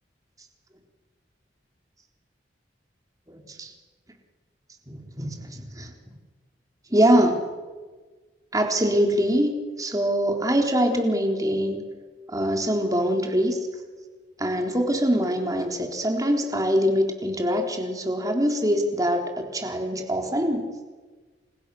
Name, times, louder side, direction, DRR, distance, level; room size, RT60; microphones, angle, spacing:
voice 1, 3.3-3.7 4.9-5.9 6.9-7.4 8.5-11.8 12.3-13.7 14.4-20.7, equal, 20° right, 3 dB, 3.9 m, -24 dB
29.0 x 28.0 x 7.1 m, 1.4 s
head